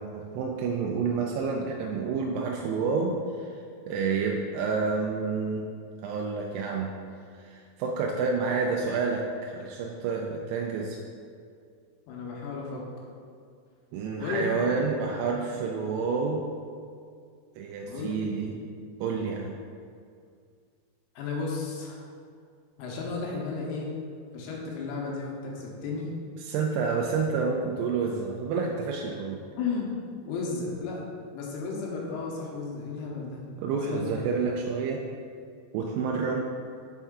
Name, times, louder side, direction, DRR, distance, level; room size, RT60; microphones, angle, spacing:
voice 1, 0.0-5.7 6.0-7.0 7.3-11.0 13.9-16.5 17.6-18.6 19.0-19.6 26.4-29.4 33.6-35.1 35.7-36.5, right 5 dB, 85° right, 0 dB, 2.5 m, -29 dB
voice 2, 12.1-12.8 14.2-14.5 17.8-18.5 21.2-22.0 22.8-23.9 24.3-26.1 29.6-29.9 30.2-31.1 31.3-33.5 33.9-34.1, left 4 dB, 80° left, -2 dB, 2.7 m, -33 dB
5.6 x 5.4 x 3.6 m, 2.2 s
omnidirectional pair, 4.9 m